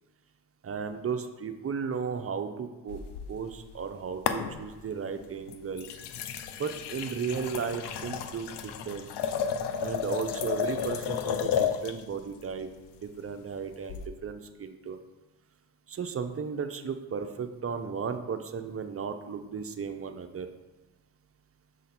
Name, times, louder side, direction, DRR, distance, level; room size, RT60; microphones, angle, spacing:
voice 1, 0.6-3.0 3.3-5.9 6.6-9.1 9.8-12.7 13.0-15.0 15.9-20.5, right 6 dB, 30° right, 7 dB, 0.6 m, -35 dB
sound 1, 2.9-3.9 4.3-4.9 5.5-12.0 13.9-14.1, left 8 dB, 65° left, 0.7 m, -32 dB
6.7 x 3.8 x 4.2 m, 1.2 s
supercardioid pair, 70°, 44 cm